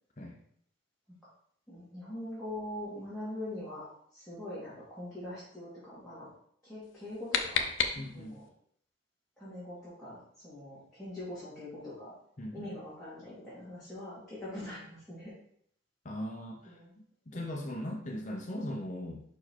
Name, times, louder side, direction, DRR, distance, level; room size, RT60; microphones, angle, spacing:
voice 1, 1.7-3.8 4.1-6.3 6.6-7.6 8.1-8.4 9.4-12.1 12.5-15.3 16.6-16.9 17.3-17.4, left 1 dB, ahead, -13 dB, 2.4 m, -43 dB
sound 1, 6.8-8.5, left 6 dB, 75° left, 0.7 m, -33 dB
voice 2, 8.0-8.4 12.4-12.7 16.0-16.8 17.3-19.2, left 1 dB, 35° left, 0 dB, 0.7 m, -39 dB
5.7 x 4.5 x 4.5 m, 0.65 s
head